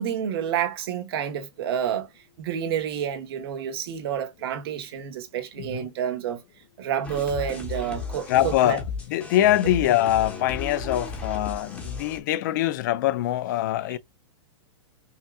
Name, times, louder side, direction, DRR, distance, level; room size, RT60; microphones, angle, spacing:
voice 1, 0.0-2.1 2.4-6.4 6.8-8.8 9.8-9.9, right 9 dB, 55° right, 1.1 m, -29 dB
sound 1, 7.0-12.2, left 4 dB, 5° left, 0.8 m, -35 dB
voice 2, 8.3-8.8 9.1-14.0, left 13 dB, 40° left, 0.4 m, -23 dB
5.5 x 2.3 x 2.2 m
supercardioid pair, 165°, 16 cm